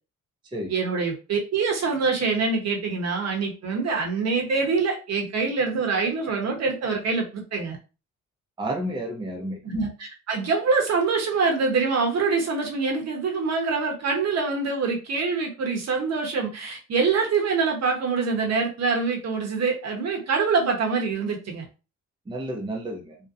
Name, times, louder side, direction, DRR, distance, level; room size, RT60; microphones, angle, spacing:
voice 1, 0.7-7.8 9.6-21.6, right 4 dB, 60° right, 2 dB, 0.9 m, -25 dB
voice 2, 8.6-9.6 22.3-23.2, right 1 dB, 15° right, 1 dB, 0.5 m, -31 dB
2.6 x 2.1 x 2.4 m, 0.32 s
cardioid pair, 90°, 30 cm